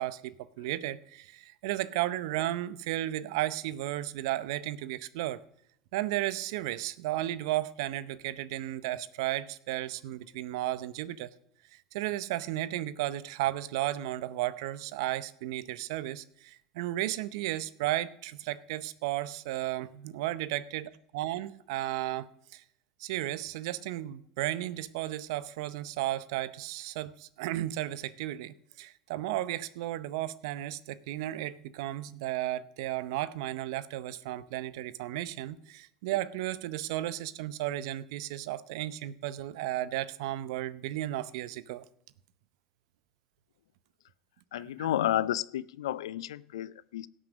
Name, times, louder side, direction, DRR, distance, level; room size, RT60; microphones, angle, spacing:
voice 1, 0.0-5.4 5.9-11.3 11.9-22.6 23.0-41.8 44.8-44.9, right 15 dB, 70° right, 17 dB, 0.7 m, -34 dB
voice 2, 44.5-47.1, left 12 dB, 80° left, 18 dB, 0.5 m, -31 dB
17.5 x 6.2 x 6.4 m, 0.70 s
hypercardioid pair, 80°, 3 cm